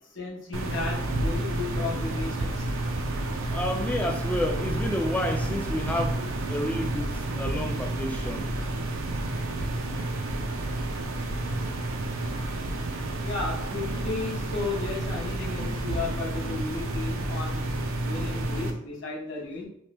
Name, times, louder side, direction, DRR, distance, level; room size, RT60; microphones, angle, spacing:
voice 1, 0.1-2.7 13.2-17.6 18.0-19.7, left 3 dB, 70° left, -5 dB, 1.0 m, -34 dB
sound 1, 0.5-18.7, right 2 dB, 85° right, 0.4 m, -30 dB
voice 2, 3.5-8.5, left 1 dB, 5° left, 3 dB, 0.3 m, -30 dB
3.3 x 2.1 x 2.9 m, 0.73 s
head